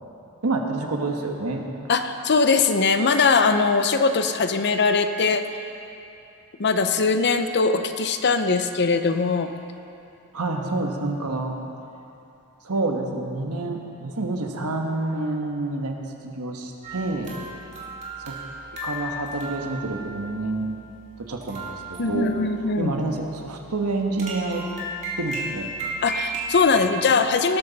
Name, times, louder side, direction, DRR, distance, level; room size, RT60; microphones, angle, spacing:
voice 1, 0.4-1.7 10.3-11.6 12.6-16.0 16.2-17.3 18.2-18.3 18.8-20.8 21.2-22.3 22.8-24.6 25.2-25.7, right 2 dB, 75° right, 2 dB, 1.3 m, -28 dB
voice 2, 1.9-5.4 6.6-9.5 22.0-23.0 26.0-27.6, left 4 dB, 50° left, 8 dB, 0.7 m, -21 dB
sound 1, 16.8-26.8, right 1 dB, 30° right, 2.6 m, -35 dB
19.0 x 13.0 x 4.1 m, 2.7 s
head